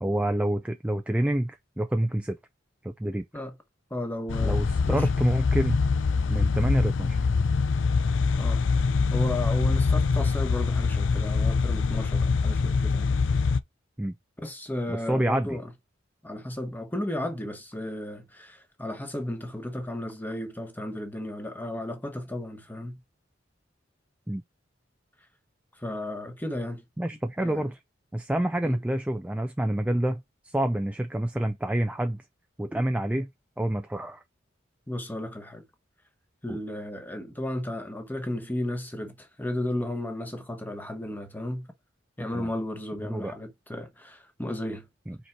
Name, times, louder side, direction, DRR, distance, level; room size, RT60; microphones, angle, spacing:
voice 1, 0.0-2.4 2.8-3.2 4.4-5.8 6.3-7.2 14.0-14.1 14.9-15.6 24.3-24.4 27.0-27.8 28.1-32.2 32.6-33.3 33.6-34.2 36.5-36.6 42.3-42.5 43.0-43.3 45.1-45.2, right 1 dB, 5° right, 0.4 m, -28 dB
voice 2, 3.9-4.6 4.9-5.1 8.4-8.6 9.1-13.1 14.4-15.7 16.2-23.0 25.8-26.8 27.4-27.6 28.6-28.8 34.9-35.6 36.4-41.7 42.2-44.9, left 1 dB, 10° left, 1.1 m, -34 dB
sound 1, 4.3-13.6, left 4 dB, 80° left, 0.5 m, -24 dB
5.2 x 4.3 x 4.7 m
head